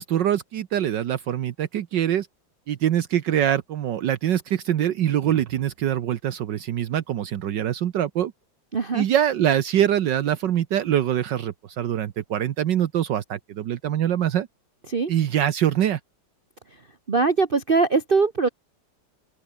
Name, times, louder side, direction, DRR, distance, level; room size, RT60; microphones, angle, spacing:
voice 1, 0.0-2.3 2.7-8.3 8.9-14.5 15.1-16.0, right 10 dB, 70° right, 1.6 m, -24 dB
voice 2, 8.7-9.0 14.9-15.1 17.1-18.5, right 4 dB, 30° right, 1.3 m, -21 dB
open air
omnidirectional pair, 2.1 m